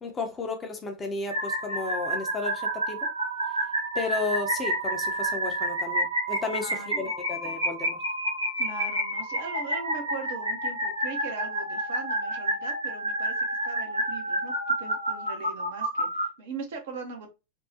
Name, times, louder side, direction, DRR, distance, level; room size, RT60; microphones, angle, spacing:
voice 1, 0.0-3.0 3.9-8.0, left 3 dB, 20° left, 0.7 m, -33 dB
sound 1, 1.3-16.3, right 1 dB, 85° right, 0.8 m, -29 dB
voice 2, 6.5-7.1 8.6-17.3, right 4 dB, 55° right, 0.9 m, -40 dB
3.5 x 2.3 x 2.7 m
figure-of-eight pair, 90°, 0 cm